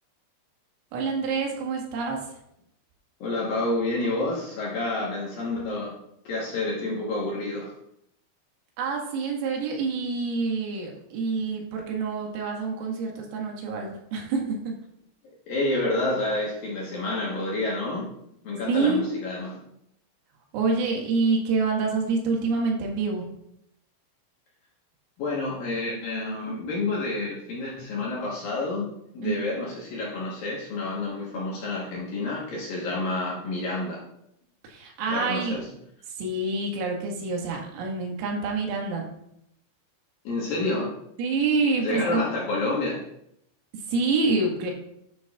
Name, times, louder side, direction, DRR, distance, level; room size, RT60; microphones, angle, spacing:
voice 1, 0.9-2.3 8.8-14.7 18.7-19.2 20.5-23.3 29.2-29.4 34.6-35.6 36.1-39.1 41.2-42.3 43.7-44.7, right 4 dB, 90° right, 0 dB, 4.4 m, -27 dB
voice 2, 3.2-6.0 6.2-7.7 15.5-18.1 18.4-19.6 25.2-34.0 35.1-35.7 40.2-40.9 41.8-43.0, left 2 dB, 65° left, -4 dB, 2.3 m, -29 dB
10.5 x 10.5 x 2.4 m, 0.77 s
omnidirectional pair, 5.8 m